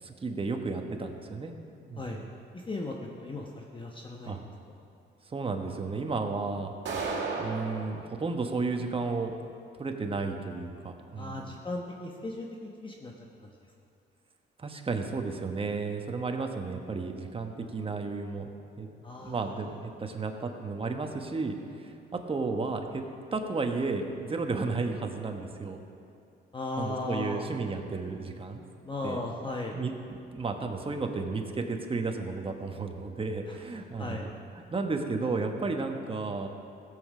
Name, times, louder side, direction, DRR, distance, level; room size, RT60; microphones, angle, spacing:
voice 1, 0.0-1.5 1.9-2.2 4.2-4.4 5.3-6.7 7.4-9.4 9.8-11.5 14.6-18.5 18.8-18.9 19.2-23.0 23.3-25.8 26.8-28.6 29.0-29.2 29.7-29.9 30.3-34.3 34.7-36.5, right 4 dB, 30° right, 4 dB, 1.2 m, -33 dB
voice 2, 2.5-4.4 11.2-13.1 13.4-13.6 19.0-19.8 26.5-27.5 28.8-29.8 33.5-33.6 34.0-34.3, left 2 dB, 25° left, 0 dB, 1.0 m, -37 dB
sound 1, 6.8-7.9, right 4 dB, 65° right, 2.0 m, -32 dB
16.0 x 7.7 x 5.0 m, 2.5 s
cardioid pair, 90°, 20 cm